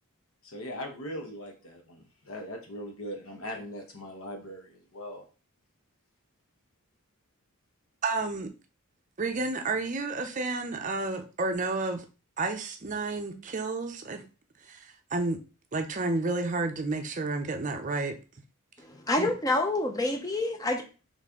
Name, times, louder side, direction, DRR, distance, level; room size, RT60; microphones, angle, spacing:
voice 1, 0.4-5.2, equal, 70° left, 2 dB, 1.1 m, -40 dB
voice 2, 8.0-8.5 9.2-12.0 12.4-14.3 14.6-15.4 15.7-18.2 19.2-19.3, right 3 dB, 35° right, 6 dB, 0.5 m, -31 dB
voice 3, 18.8-20.8, left 2 dB, 15° left, 4 dB, 0.5 m, -28 dB
4.2 x 3.2 x 3.6 m, 0.34 s
head